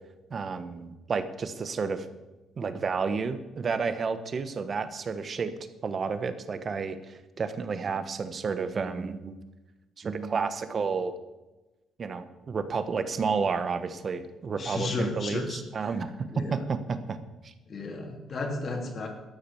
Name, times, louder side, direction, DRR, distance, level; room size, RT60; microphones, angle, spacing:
voice 1, 0.3-2.1 2.6-5.5 5.8-9.4 10.0-11.1 12.0-17.2 17.4-17.5, right 5 dB, 45° right, 11 dB, 1.2 m, -31 dB
voice 2, 14.6-15.6 16.3-16.6 17.7-19.1, left 3 dB, 50° left, 3 dB, 2.9 m, -33 dB
13.0 x 8.9 x 7.1 m, 1.1 s
cardioid pair, 90°, 0 cm